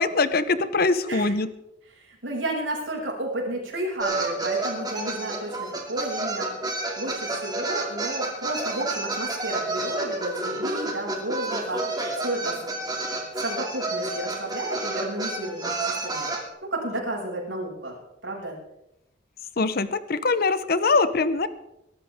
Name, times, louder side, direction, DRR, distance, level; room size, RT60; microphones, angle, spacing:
voice 1, 0.0-1.5 19.6-21.5, left 3 dB, 55° left, 13 dB, 0.9 m, -23 dB
voice 2, 1.0-1.3 2.0-6.5 7.0-11.8 12.1-12.6 13.4-15.8 16.0-16.3 16.6-18.0 18.2-18.6, right 1 dB, 80° right, -2 dB, 6.4 m, -32 dB
sound 1, 4.0-16.4, right 2 dB, 20° right, 2.5 m, -30 dB
22.5 x 12.5 x 3.6 m, 0.85 s
head